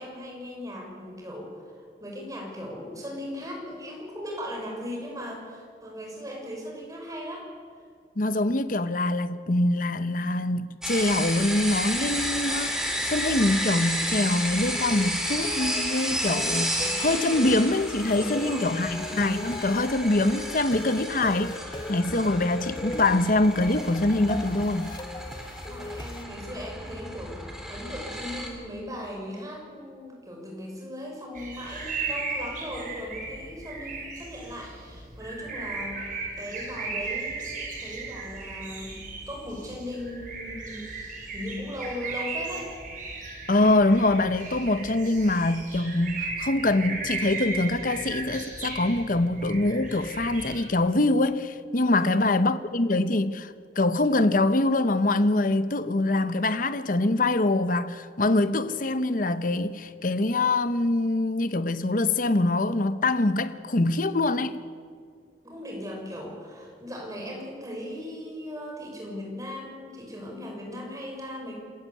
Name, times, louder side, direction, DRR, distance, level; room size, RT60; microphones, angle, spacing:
voice 1, 0.0-7.5 18.3-18.7 25.6-39.0 39.3-40.9 41.3-42.7 51.9-52.2 65.4-71.5, equal, 20° right, 6.2 m, -38 dB
voice 2, 8.2-21.6 21.9-24.9 43.5-64.6, left 2 dB, 50° left, 0.9 m, -24 dB
sound 1, 10.8-28.5, equal, 5° right, 3.4 m, -32 dB
sound 2, 14.2-26.2, left 2 dB, 25° left, 1.2 m, -39 dB
sound 3, 31.4-50.7, right 3 dB, 50° right, 6.1 m, -36 dB
27.5 x 15.5 x 8.5 m
head